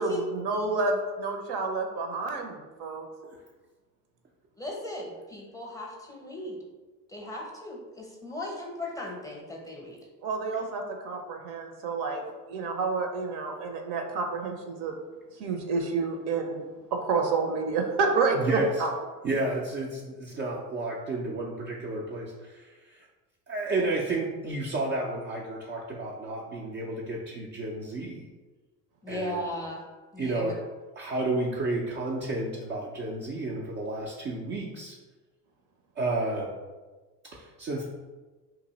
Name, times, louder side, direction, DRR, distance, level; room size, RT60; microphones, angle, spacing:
voice 1, 0.0-3.1 10.2-12.2 12.5-14.9 15.4-16.6 16.9-18.9, right 4 dB, 55° right, 4 dB, 0.7 m, -29 dB
voice 2, 4.6-6.6 7.1-10.0 29.0-29.8 30.1-30.6, left 1 dB, 5° left, -2 dB, 0.7 m, -37 dB
voice 3, 18.4-18.7 19.2-23.0 23.5-28.3 29.1-29.4 30.2-30.6 31.0-35.0 36.0-36.5 37.3-37.9, right 2 dB, 25° right, -4 dB, 0.4 m, -31 dB
2.8 x 2.5 x 4.0 m, 1.3 s
hypercardioid pair, 90°, 48 cm